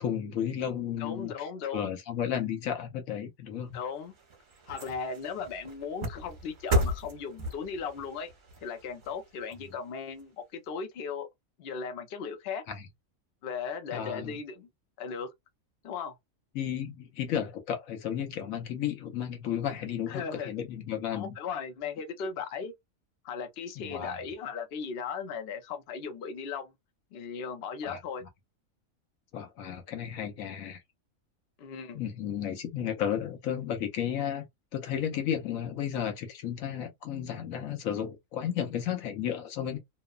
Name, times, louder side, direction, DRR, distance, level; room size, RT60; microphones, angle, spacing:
voice 1, 0.0-3.8 12.7-12.9 13.9-14.4 16.5-21.4 23.8-24.2 27.8-28.0 29.3-30.8 31.9-34.5 34.7-39.8, left 9 dB, 80° left, 1.1 m, -33 dB
voice 2, 1.0-1.9 3.7-4.1 4.7-8.3 8.6-11.3 11.6-12.6 13.4-14.7 15.0-15.3 15.8-16.2 20.1-20.5 21.1-22.7 23.2-26.7 27.1-28.2 31.6-32.0, left 6 dB, 55° left, 0.8 m, -37 dB
sound 1, 3.7-10.2 10.7-10.8, equal, 40° right, 0.9 m, -35 dB
2.9 x 2.1 x 2.3 m
omnidirectional pair, 1.4 m